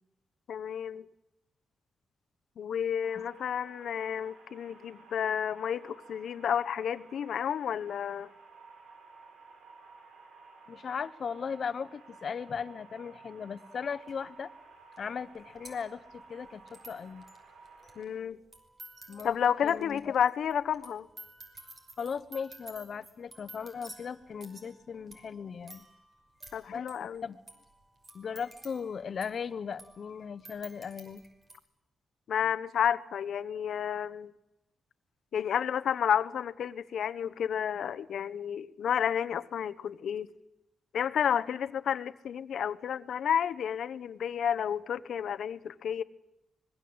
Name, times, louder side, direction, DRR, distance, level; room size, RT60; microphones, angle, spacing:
voice 1, 0.5-1.0 2.6-8.3 18.0-18.4 19.2-21.1 26.5-27.2 32.3-34.3 35.3-40.3 40.9-46.0, left 8 dB, 70° left, 13 dB, 1.0 m, -31 dB
sound 1, 3.0-18.0, right 4 dB, 80° right, 6.3 m, -54 dB
voice 2, 10.7-14.5 15.0-17.2 19.1-19.4 19.6-20.1 22.0-25.8 26.7-27.4 28.1-31.2, left 6 dB, 50° left, 13 dB, 1.2 m, -38 dB
sound 2, 14.1-14.2 15.0-15.1 15.2-31.6, right 1 dB, 30° right, 5.7 m, -53 dB
26.0 x 22.0 x 8.0 m, 0.89 s
wide cardioid pair, 130°, 0 cm